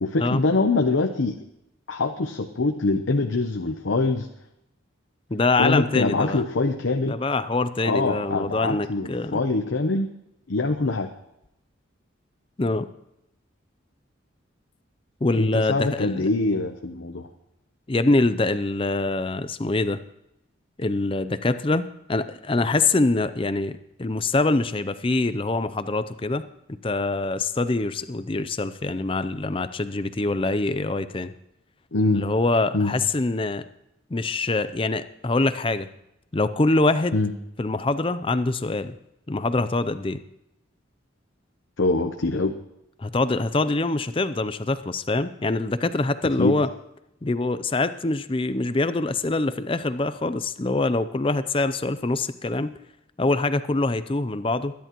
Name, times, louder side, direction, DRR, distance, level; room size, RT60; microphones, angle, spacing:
voice 1, 0.0-1.4 1.9-4.3 5.6-7.2 7.8-10.1 10.5-11.1 15.3-17.3 31.9-32.2 32.7-32.9 37.1-37.3 41.8-42.5 46.4-46.6, left 3 dB, 75° left, 5 dB, 0.8 m, -24 dB
voice 2, 5.3-6.4 7.1-9.4 12.6-12.9 15.2-16.3 17.9-20.0 20.8-31.3 32.1-33.6 34.1-35.9 36.3-37.2 37.6-39.0 39.3-40.2 43.0-46.7 47.2-52.7 53.2-54.7, left 2 dB, 25° left, 12 dB, 0.5 m, -24 dB
22.0 x 10.5 x 3.0 m, 0.83 s
head